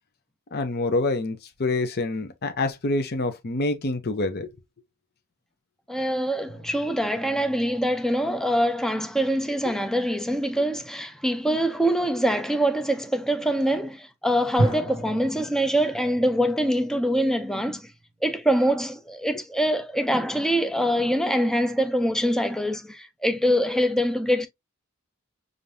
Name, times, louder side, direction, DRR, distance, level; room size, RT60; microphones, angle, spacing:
voice 1, 0.5-4.5, left 2 dB, 45° left, 0.7 m, -26 dB
voice 2, 5.9-17.9 18.2-24.5, equal, ahead, 0.5 m, -24 dB
sound 1, 6.5-9.4 10.0-10.3 14.6-18.9, right 1 dB, 30° left, 2.5 m, -35 dB
5.0 x 2.5 x 2.7 m
head